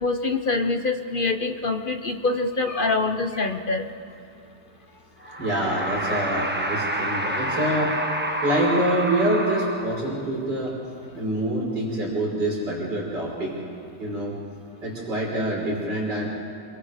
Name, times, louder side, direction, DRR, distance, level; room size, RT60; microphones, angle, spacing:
voice 1, 0.0-3.9, left 3 dB, 40° left, 7 dB, 0.8 m, -25 dB
sound 1, 5.2-10.3, right 1 dB, 5° right, 1.0 m, -28 dB
voice 2, 5.4-7.9 8.4-10.8 11.1-13.6 14.0-14.4 14.8-16.3, right 1 dB, 70° right, -3 dB, 5.7 m, -26 dB
27.5 x 23.5 x 5.1 m, 2.8 s
omnidirectional pair, 1.9 m